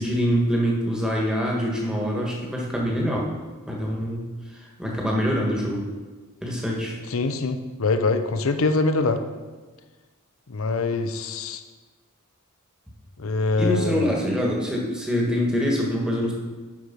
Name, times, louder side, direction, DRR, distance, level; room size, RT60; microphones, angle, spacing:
voice 1, 0.0-3.3 3.7-5.9 6.4-7.0 13.6-16.3, equal, 5° right, -2 dB, 1.5 m, -25 dB
voice 2, 7.1-9.2 10.5-11.6 13.2-14.1, left 3 dB, 70° left, 9 dB, 0.7 m, -24 dB
10.5 x 4.8 x 5.3 m, 1.3 s
head